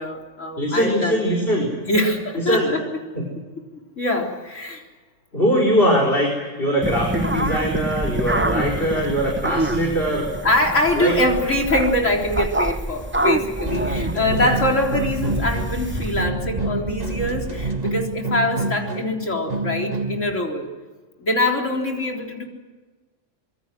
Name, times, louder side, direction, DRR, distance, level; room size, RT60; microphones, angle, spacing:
voice 1, 0.0-1.2 1.9-2.8 4.0-4.8 10.4-20.7 21.2-22.4, left 1 dB, 85° left, 1 dB, 4.2 m, -23 dB
voice 2, 0.6-1.7 2.4-2.7 5.3-6.3 6.6-10.3 11.0-11.1 13.8-14.4, equal, 50° left, -1 dB, 5.0 m, -21 dB
sound 1, 6.8-16.2, right 1 dB, 10° right, 0.7 m, -27 dB
sound 2, 13.7-20.3, right 2 dB, 35° right, 2.0 m, -27 dB
25.5 x 23.0 x 7.7 m, 1.3 s
omnidirectional pair, 1.3 m